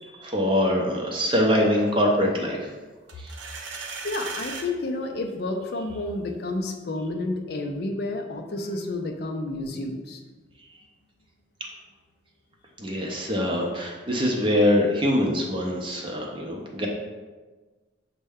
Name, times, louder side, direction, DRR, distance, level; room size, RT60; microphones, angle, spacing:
voice 1, 0.2-2.6 12.8-16.9, left 1 dB, 25° right, 0 dB, 0.6 m, -23 dB
sound 1, 3.1-4.7, right 4 dB, 70° right, 0.5 m, -36 dB
voice 2, 4.0-10.2, left 2 dB, 50° left, 3 dB, 0.4 m, -30 dB
6.3 x 2.1 x 3.5 m, 1.3 s
head